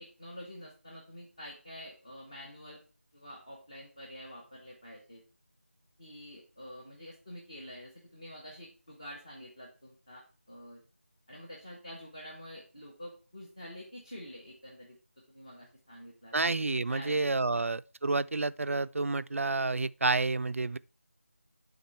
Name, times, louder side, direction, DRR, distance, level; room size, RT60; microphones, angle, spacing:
voice 1, 0.0-2.8 3.1-5.2 6.0-10.8 11.3-15.0 15.3-16.3 16.9-17.6, equal, 20° left, 0.8 m, -48 dB
voice 2, 16.3-20.8, right 3 dB, 75° right, 0.4 m, -29 dB
8.4 x 3.9 x 4.4 m
figure-of-eight pair, 180°, 7 cm